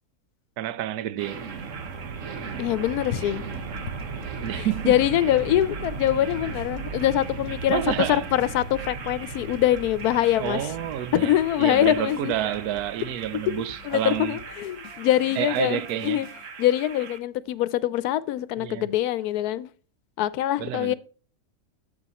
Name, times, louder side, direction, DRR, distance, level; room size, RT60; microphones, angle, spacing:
voice 1, 0.6-1.4 4.4-4.9 7.7-8.3 10.4-14.4 15.4-16.2 18.6-18.9 20.6-20.9, right 11 dB, 90° right, 1.1 m, -29 dB
sound 1, 1.2-17.2, right 5 dB, 60° right, 1.2 m, -37 dB
voice 2, 2.6-3.4 4.5-7.8 8.1-10.7 11.1-12.3 13.8-16.3 16.6-19.7 20.2-20.9, left 13 dB, 90° left, 1.1 m, -24 dB
sound 2, 3.5-16.5, left 5 dB, 65° left, 1.4 m, -49 dB
11.0 x 7.2 x 2.9 m
omnidirectional pair, 1.6 m